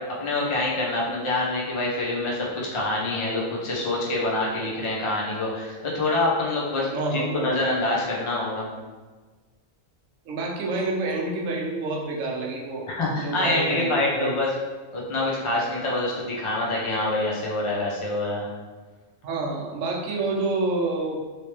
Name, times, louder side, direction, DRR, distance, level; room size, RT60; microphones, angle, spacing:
voice 1, 0.0-8.7 12.9-14.5 14.9-18.5, left 2 dB, 30° left, -4 dB, 0.6 m, -26 dB
voice 2, 6.9-7.6 10.3-12.9 13.1-14.3 19.2-21.2, right 3 dB, 75° right, -2 dB, 1.0 m, -28 dB
3.3 x 3.2 x 2.9 m, 1.3 s
omnidirectional pair, 1.4 m